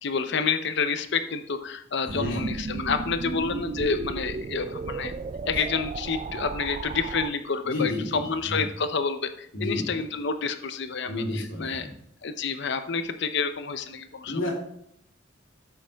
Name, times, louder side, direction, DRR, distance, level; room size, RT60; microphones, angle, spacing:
voice 1, 0.0-5.1 5.5-11.9 12.2-14.3, left 5 dB, 60° left, 10 dB, 0.7 m, -29 dB
voice 2, 2.0-2.5 7.6-8.7 9.5-9.9 11.0-11.9 14.3-14.5, left 2 dB, 80° left, -3 dB, 3.6 m, -31 dB
sound 1, 2.1-7.3, right 4 dB, 35° right, 0.3 m, -34 dB
11.5 x 7.7 x 3.5 m, 0.73 s
head